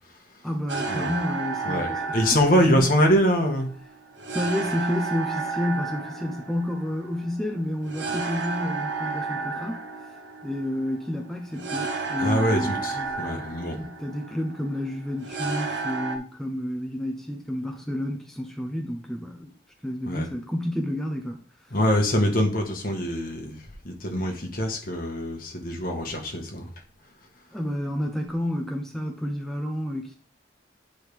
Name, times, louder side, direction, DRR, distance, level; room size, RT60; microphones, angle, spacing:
voice 1, 0.4-2.2 2.7-2.9 4.3-9.8 10.4-13.4 13.8-19.5 19.8-21.4 27.5-30.1, left 1 dB, ahead, 0.8 m, -30 dB
sound 1, 0.7-16.2, right 4 dB, 80° right, 1.1 m, -32 dB
voice 2, 1.6-3.7 12.2-13.8 20.0-20.3 21.7-23.6 23.8-26.7, equal, 50° left, 1.6 m, -24 dB
9.3 x 4.7 x 3.6 m
head